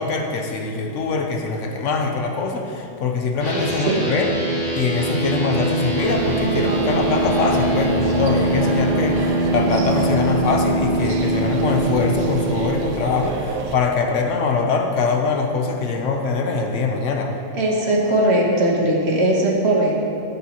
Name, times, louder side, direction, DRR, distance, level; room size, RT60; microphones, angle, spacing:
voice 1, 0.0-4.3 4.7-17.4, left 4 dB, 80° left, 3 dB, 1.1 m, -23 dB
sound 1, 3.4-12.8, right 1 dB, 55° left, 2.6 m, -23 dB
voice 2, 3.4-4.0 17.5-20.0, right 1 dB, 60° right, -2 dB, 1.4 m, -19 dB
sound 2, 6.0-13.8, right 4 dB, 90° right, 1.0 m, -27 dB
11.0 x 7.2 x 3.0 m, 2.6 s
omnidirectional pair, 1.3 m